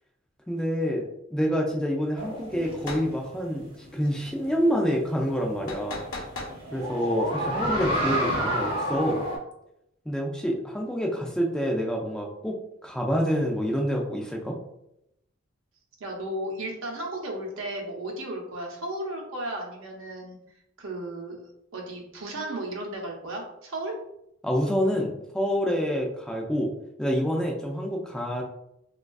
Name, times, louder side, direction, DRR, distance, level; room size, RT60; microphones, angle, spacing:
voice 1, 0.5-6.0 6.7-9.2 10.1-12.6 12.8-14.5 24.4-26.7 27.0-28.4, equal, 5° left, -1 dB, 0.3 m, -27 dB
sound 1, 2.2-9.4, equal, 25° right, 0.7 m, -30 dB
sound 2, 2.8-3.1 5.7-6.6, left 2 dB, 75° left, 0.6 m, -36 dB
voice 2, 16.0-20.4 20.8-21.4 21.7-23.9, right 1 dB, 70° right, 0 dB, 0.7 m, -34 dB
3.3 x 2.3 x 2.2 m, 0.80 s
head